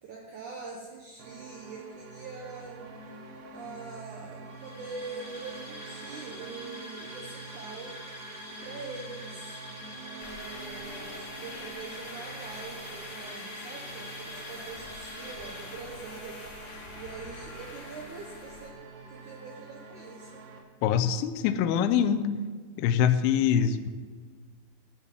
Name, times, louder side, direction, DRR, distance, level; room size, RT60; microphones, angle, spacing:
voice 1, 0.0-2.9 3.5-8.0 8.6-9.6 10.1-18.8 19.1-20.5, right 4 dB, 85° right, -1 dB, 1.7 m, -44 dB
sound 1, 1.2-20.6, right 4 dB, 65° right, 2.4 m, -47 dB
sound 2, 4.5-16.3, left 1 dB, 15° right, 1.5 m, -45 dB
sound 3, 10.2-18.7, left 3 dB, 50° left, 3.2 m, -45 dB
voice 2, 20.8-22.3 22.8-23.9, left 8 dB, 80° left, 9 dB, 2.3 m, -24 dB
13.5 x 6.8 x 7.5 m, 1.5 s
omnidirectional pair, 5.1 m